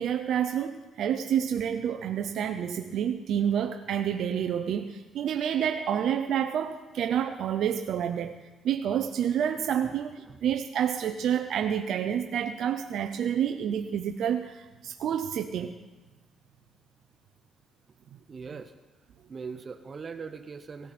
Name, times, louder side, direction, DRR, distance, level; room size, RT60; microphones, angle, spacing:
voice 1, 0.0-8.3 8.6-15.7, right 9 dB, 70° right, 5 dB, 0.7 m, -29 dB
voice 2, 18.3-18.7 19.3-20.9, right 5 dB, 40° right, 9 dB, 0.7 m, -40 dB
17.0 x 13.5 x 4.3 m, 1.2 s
cardioid pair, 90°, 0 cm